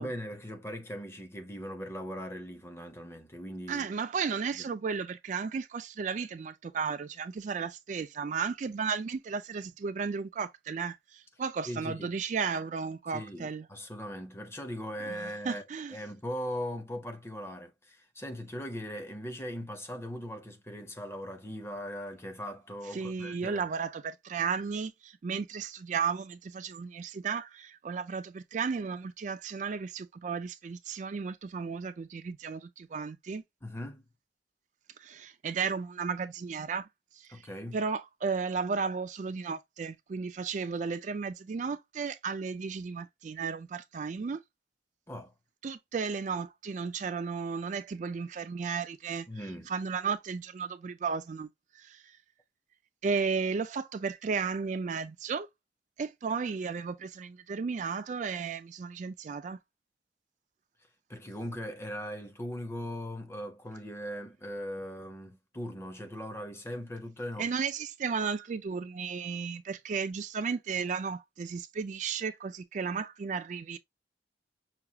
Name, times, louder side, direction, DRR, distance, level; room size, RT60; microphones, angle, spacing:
voice 1, 0.0-3.9 4.5-4.6 11.7-12.2 13.1-15.6 15.9-23.7 33.6-34.0 37.3-37.8 45.1-45.3 49.3-49.7 61.1-67.5, equal, 15° left, 0.7 m, -39 dB
voice 2, 3.7-13.7 15.1-16.0 22.9-33.4 35.0-36.9 37.2-37.5 37.7-44.4 45.6-49.3 49.7-51.5 51.7-52.2 53.0-55.5 56.0-59.6 67.4-73.8, right 5 dB, 45° right, 0.3 m, -34 dB
5.8 x 2.3 x 2.8 m
head